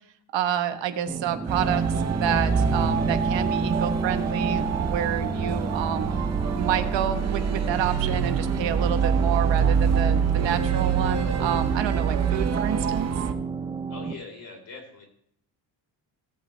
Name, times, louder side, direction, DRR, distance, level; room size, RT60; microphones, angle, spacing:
voice 1, 0.3-6.2 6.5-13.1, right 10 dB, 90° right, 9 dB, 1.2 m, -29 dB
sound 1, 1.1-14.1, right 3 dB, 10° right, 0.6 m, -30 dB
sound 2, 1.5-13.3, right 7 dB, 35° right, 0.9 m, -26 dB
voice 2, 13.9-15.0, left 3 dB, 55° left, 1 dB, 4.1 m, -42 dB
17.5 x 8.3 x 3.3 m, 0.68 s
cardioid pair, 175°, 43 cm